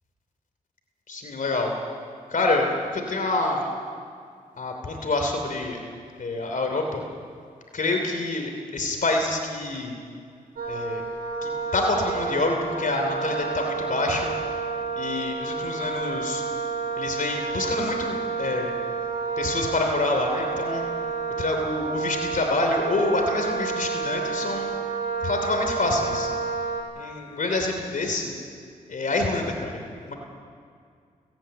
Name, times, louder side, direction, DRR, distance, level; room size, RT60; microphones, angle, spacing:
voice 1, 1.1-1.7 2.3-3.7 4.6-5.8 6.2-7.0 7.7-9.9 10.7-11.0 11.4-14.3 15.0-16.4 17.0-18.7 19.4-20.8 21.4-24.7 25.2-26.3 27.0-28.3 28.9-30.1, left 2 dB, 65° left, 3 dB, 3.1 m, -27 dB
Wind instrument woodwind instrument, 10.6-26.8, right 5 dB, 85° right, 5.5 m, -30 dB
30.0 x 10.5 x 9.0 m, 2.2 s
cardioid pair, 55°, 15 cm